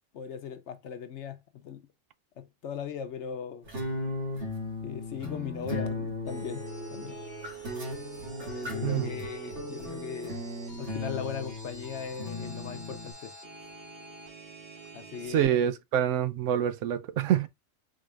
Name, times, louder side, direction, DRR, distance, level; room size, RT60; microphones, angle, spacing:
voice 1, 0.1-1.9 2.4-3.7 4.8-6.6 6.9-7.2 8.4-10.4 10.8-13.3 14.9-15.6, left 7 dB, 65° left, 0.9 m, -38 dB
sound 1, 3.7-13.1, left 2 dB, 60° right, 2.1 m, -37 dB
sound 2, 6.3-15.5, right 5 dB, 45° right, 2.9 m, -46 dB
voice 2, 15.3-17.5, right 10 dB, 85° right, 1.0 m, -26 dB
4.9 x 3.9 x 2.4 m
omnidirectional pair, 1.3 m